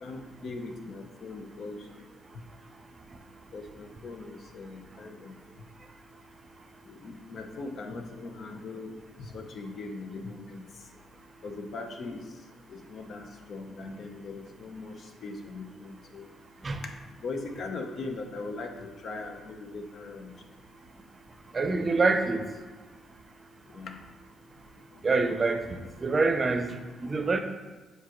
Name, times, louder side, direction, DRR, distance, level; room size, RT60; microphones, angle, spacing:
voice 1, 0.0-1.8 3.5-5.3 6.9-10.6 11.4-12.2 12.7-16.2 16.8-16.9 17.2-20.3 23.7-24.0, left 3 dB, 60° left, 4 dB, 0.8 m, -40 dB
voice 2, 21.5-22.4 25.0-27.4, right 3 dB, 30° right, 7 dB, 0.6 m, -26 dB
7.3 x 4.7 x 3.1 m, 1.3 s
cardioid pair, 90°, 0 cm